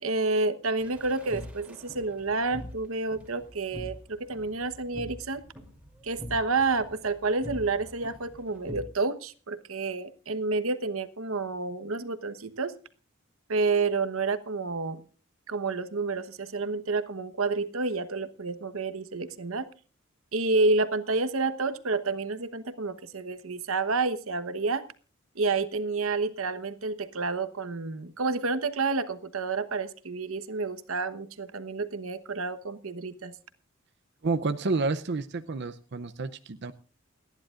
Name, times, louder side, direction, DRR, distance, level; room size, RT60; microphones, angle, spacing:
voice 1, 0.0-5.4 6.0-12.7 13.5-15.0 15.5-19.7 20.3-24.8 25.3-33.3, right 3 dB, 85° right, 12 dB, 1.1 m, -29 dB
sound 1, 0.8-8.8, equal, 5° right, 2.9 m, -44 dB
voice 2, 34.2-36.7, right 3 dB, 55° right, 8 dB, 0.6 m, -29 dB
29.0 x 10.5 x 2.5 m, 0.37 s
head